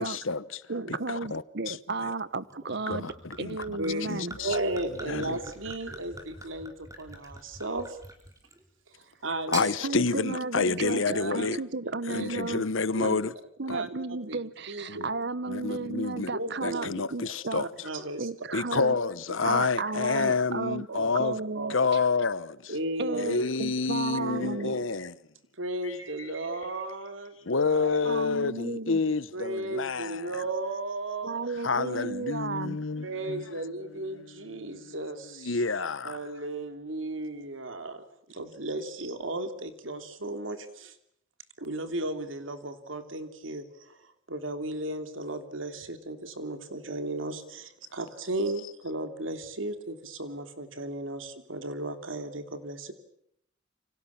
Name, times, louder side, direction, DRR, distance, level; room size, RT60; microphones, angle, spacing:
voice 1, 0.0-0.6 0.9-1.8 2.9-3.8 4.1-4.6 5.1-5.4 9.5-11.6 12.1-13.3 13.7-13.8 14.9-15.0 15.5-16.3 16.6-17.7 18.5-21.4 21.7-22.7 23.1-25.1 25.8-26.0 27.4-30.3 31.6-33.5 34.1-34.9 35.4-36.2, left 4 dB, 85° left, 1.0 m, -29 dB
voice 2, 0.7-3.1 3.4-4.3 9.8-12.7 13.0-13.2 13.6-17.6 18.2-19.0 19.4-20.9 21.1-22.0 23.0-24.8 28.1-29.0 31.2-32.8, right 3 dB, 60° right, 1.1 m, -33 dB
Gurgling / Chink clink / Liquid, 2.5-8.7 9.3-9.7, right 1 dB, 15° right, 4.4 m, -44 dB
voice 3, 3.8-8.0 8.9-9.7 10.5-11.6 11.8-12.4 12.9-13.3 13.7-13.9 14.3-14.4 14.7-15.1 16.3-17.0 17.2-17.3 17.8-18.3 18.7-18.8 19.3-19.4 20.1-20.4 20.9-21.1 21.5-21.9 22.7-23.7 24.2-24.8 25.6-27.4 27.6-28.1 29.3-31.4 31.7-32.0 33.0-38.0 38.3-41.0 41.6-52.9, right 2 dB, 85° right, 3.1 m, -35 dB
29.0 x 25.0 x 7.2 m
head